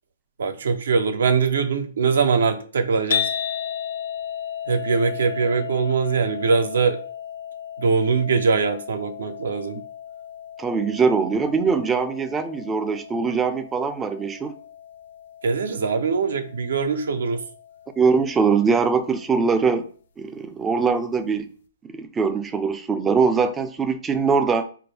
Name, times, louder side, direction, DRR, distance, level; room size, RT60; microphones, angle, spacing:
voice 1, 0.4-3.3 4.7-7.0 7.8-9.8 15.4-17.4, right 5 dB, 80° right, 7 dB, 0.6 m, -22 dB
sound 1, 3.1-19.3, left 9 dB, 70° left, 0.5 m, -35 dB
voice 2, 10.6-14.5 18.0-19.8 20.2-21.5 21.8-24.7, right 5 dB, 15° right, 10 dB, 0.4 m, -22 dB
4.3 x 2.5 x 3.3 m, 0.43 s
hypercardioid pair, 145°, 0 cm